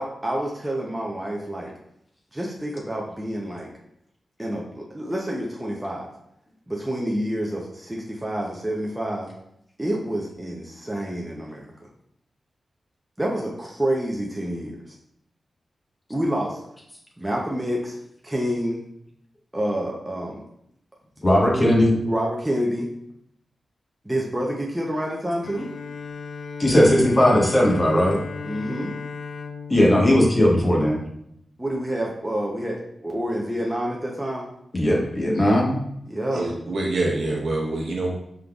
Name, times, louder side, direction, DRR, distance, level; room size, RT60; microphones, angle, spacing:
voice 1, 0.0-1.7 2.3-3.7 4.4-6.1 6.7-9.3 9.8-11.7 13.2-14.8 16.1-16.6 17.2-18.0 18.2-18.8 19.5-20.4 22.1-22.9 24.0-25.7 28.4-28.9 31.6-34.5 36.1-36.5, equal, 10° right, -2 dB, 0.6 m, -28 dB
voice 2, 21.2-22.0 26.6-28.2 29.7-31.0 34.7-35.8, left 1 dB, 25° left, -2 dB, 1.0 m, -18 dB
Bowed string instrument, 25.4-31.3, left 5 dB, 65° left, 0.4 m, -36 dB
voice 3, 36.3-38.1, right 2 dB, 70° right, -2 dB, 1.1 m, -25 dB
5.1 x 3.8 x 2.3 m, 0.74 s
wide cardioid pair, 110°, 0 cm